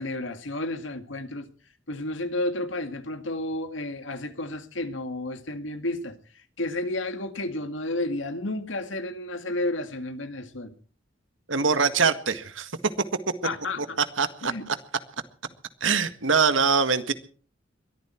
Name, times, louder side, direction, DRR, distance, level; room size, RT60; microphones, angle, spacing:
voice 1, 0.0-1.5 1.9-6.1 6.6-10.7 13.4-14.0 14.4-14.7, left 2 dB, 75° left, 2.1 m, -31 dB
voice 2, 11.5-12.7 14.2-14.8 15.8-17.1, right 5 dB, 85° right, 1.8 m, -23 dB
22.5 x 14.0 x 4.5 m
head